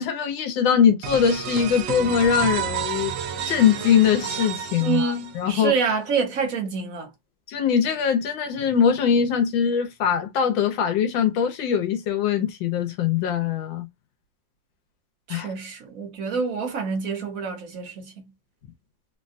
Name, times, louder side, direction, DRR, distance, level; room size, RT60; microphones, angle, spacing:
voice 1, 0.0-3.2 3.5-5.7 7.5-13.9 15.3-15.5, left 7 dB, 85° left, 1.5 m, -22 dB
sound 1, 1.0-5.6, right 9 dB, 75° right, 1.3 m, -30 dB
voice 2, 4.8-7.1 15.3-18.3, right 5 dB, 55° right, 1.2 m, -27 dB
3.5 x 2.3 x 2.5 m
omnidirectional pair, 2.0 m